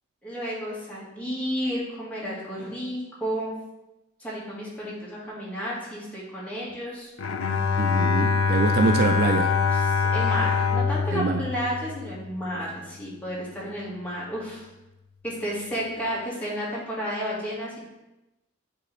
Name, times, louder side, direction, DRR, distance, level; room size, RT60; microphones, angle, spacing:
voice 1, 0.2-3.6 4.2-7.1 9.7-14.7 15.2-17.8, equal, 5° left, -7 dB, 1.8 m, -32 dB
Bowed string instrument, 7.2-12.5, left 5 dB, 80° left, 0.5 m, -24 dB
voice 2, 7.8-9.5 11.1-11.5, right 4 dB, 50° right, 6 dB, 0.3 m, -25 dB
8.3 x 3.5 x 3.3 m, 0.98 s
head